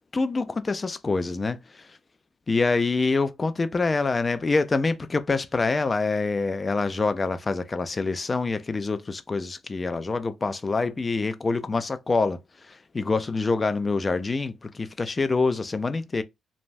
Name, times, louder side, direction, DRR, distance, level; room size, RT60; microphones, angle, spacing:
voice 1, 0.1-2.0 2.5-16.2, left 3 dB, 30° left, 0.4 m, -26 dB
3.1 x 2.2 x 2.5 m
cardioid pair, 90°, 0 cm